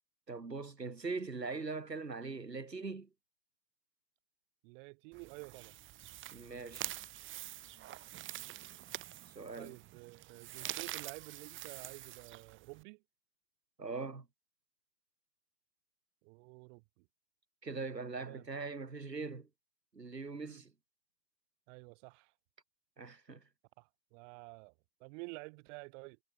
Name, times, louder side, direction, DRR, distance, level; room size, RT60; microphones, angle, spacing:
voice 1, 0.3-3.1 6.3-6.9 9.3-9.8 13.8-14.3 17.6-19.5 19.9-20.7 23.0-23.5, right 4 dB, 90° right, 5.9 m, -41 dB
voice 2, 4.6-5.7 9.6-13.0 16.2-17.1 18.2-18.5 20.4-20.6 21.7-22.3 23.8-24.7 25.0-26.2, right 31 dB, 50° right, 3.5 m, -51 dB
sound 1, 5.1-12.8, right 14 dB, 25° right, 1.0 m, -46 dB
figure-of-eight pair, 95°, 48 cm